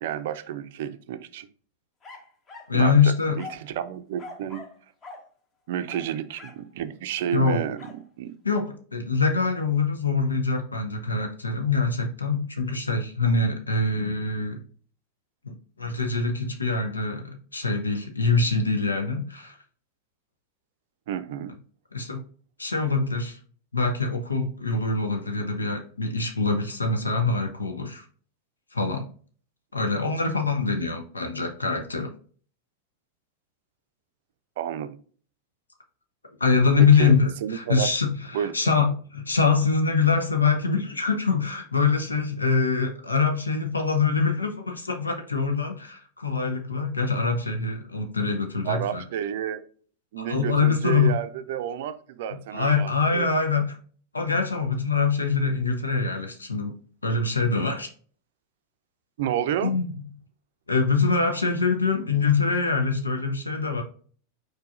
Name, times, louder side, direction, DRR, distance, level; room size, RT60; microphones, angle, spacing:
voice 1, 0.0-1.5 2.7-4.6 5.7-7.8 8.2-8.4 21.1-21.5 34.6-35.0 36.8-37.1 37.4-37.9 38.3-38.5 48.6-49.6 50.1-53.3 59.2-59.7, right 10 dB, 55° right, 11 dB, 0.4 m, -30 dB
sound 1, 2.0-2.8 3.4-3.7 4.2-4.8 5.0-5.3 5.9-6.7 7.8-8.0, left 3 dB, 25° left, 1.1 m, -43 dB
voice 2, 2.7-3.4 7.3-7.6 8.4-14.6 15.4-19.6 21.9-22.2 22.6-23.4 23.7-28.0 28.7-29.1 29.7-32.1 36.4-49.0 50.3-51.2 52.5-53.8 54.1-56.7 57.0-57.9 59.6-59.9 60.7-63.8, left 4 dB, 80° left, 5 dB, 0.7 m, -24 dB
4.6 x 4.6 x 2.4 m, 0.44 s
figure-of-eight pair, 90°, 0 cm